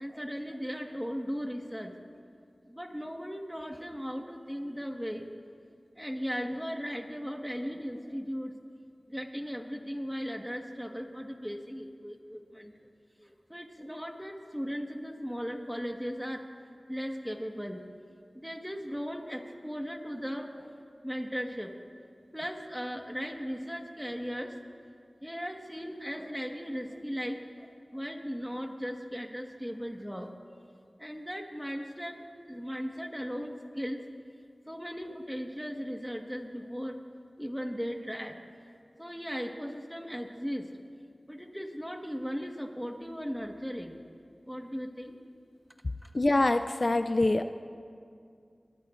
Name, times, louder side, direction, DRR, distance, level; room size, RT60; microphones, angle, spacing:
voice 1, 0.0-1.9 2.7-5.3 5.9-8.5 9.1-12.7 13.2-16.4 16.9-17.8 18.3-20.7 21.0-21.7 22.3-24.5 25.2-30.3 31.0-34.0 34.7-37.0 37.4-38.4 39.0-40.7 41.3-44.0 44.4-45.2 46.0-46.1, equal, ahead, 3 dB, 1.5 m, -37 dB
voice 2, 46.1-47.5, left 2 dB, 55° left, 9 dB, 0.4 m, -25 dB
24.0 x 19.0 x 2.6 m, 2.3 s
wide cardioid pair, 45°, 0 cm